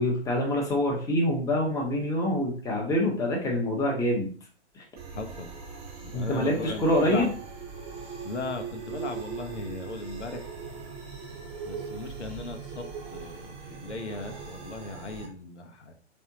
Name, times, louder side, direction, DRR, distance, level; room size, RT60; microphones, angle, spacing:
voice 1, 0.0-4.3 4.7-4.8 6.1-7.3, left 1 dB, 10° left, -1 dB, 1.0 m, -26 dB
sound 1, 5.0-15.3, right 5 dB, 15° right, 0.9 m, -40 dB
voice 2, 5.1-5.5 6.0-7.3 8.2-10.5 11.6-12.8 13.1-15.9, left 3 dB, 80° left, 4 dB, 1.0 m, -37 dB
4.3 x 3.6 x 2.8 m, 0.41 s
figure-of-eight pair, 120°, 34 cm